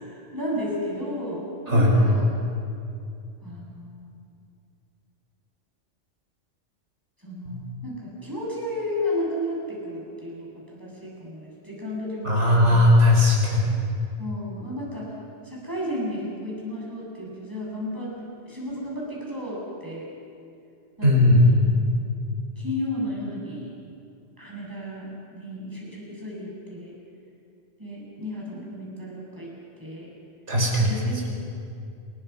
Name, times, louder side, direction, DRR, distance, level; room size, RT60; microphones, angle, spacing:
voice 1, 0.0-2.3 3.4-4.3 7.2-10.5 10.7-12.8 14.2-15.1 15.4-18.1 18.5-20.1 21.0-21.6 22.6-23.7 24.4-26.9 27.8-29.5 29.8-30.1 30.8-31.3, left 1 dB, 15° right, -5 dB, 7.1 m, -33 dB
voice 2, 12.2-13.8 21.0-21.6 30.5-30.9, left 1 dB, 65° right, -3 dB, 5.5 m, -18 dB
29.5 x 21.0 x 5.7 m, 2.5 s
omnidirectional pair, 1.3 m